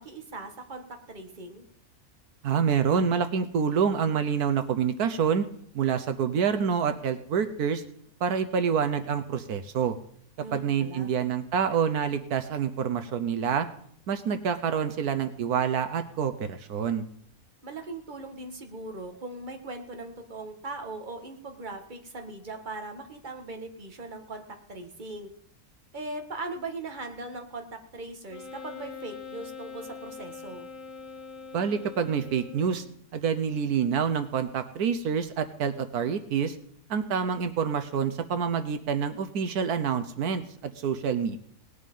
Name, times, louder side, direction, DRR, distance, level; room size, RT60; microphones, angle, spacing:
voice 1, 0.0-1.6 10.4-11.2 17.6-25.3 25.9-30.7, right 2 dB, 30° right, 4 dB, 1.8 m, -39 dB
voice 2, 2.4-5.5 5.7-7.8 8.2-10.0 10.5-13.7 14.1-17.0 31.5-32.8 33.1-36.6 36.9-41.4, right 7 dB, 80° right, 10 dB, 1.4 m, -27 dB
Wind instrument woodwind instrument, 28.3-32.9, left 5 dB, 55° left, 1.7 m, -43 dB
18.5 x 10.0 x 5.4 m, 0.65 s
omnidirectional pair, 1.6 m